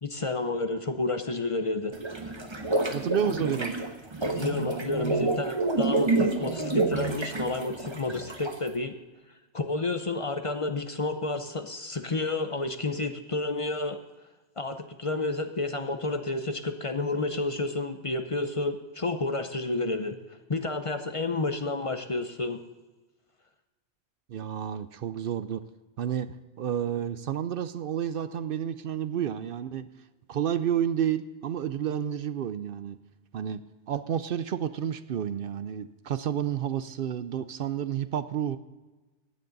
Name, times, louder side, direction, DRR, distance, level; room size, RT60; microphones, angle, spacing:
voice 1, 0.0-2.3 4.2-9.0 9.5-14.0 14.6-20.2 20.5-22.6, left 2 dB, 35° left, 8 dB, 0.6 m, -30 dB
sound 1, 1.9-8.7, right 3 dB, 25° right, 1.0 m, -28 dB
voice 2, 2.9-3.8 24.3-25.6 26.0-29.9 30.3-33.0 33.3-33.6 33.9-38.6, right 9 dB, 60° right, 13 dB, 0.6 m, -30 dB
16.0 x 10.0 x 4.0 m, 1.2 s
omnidirectional pair, 1.2 m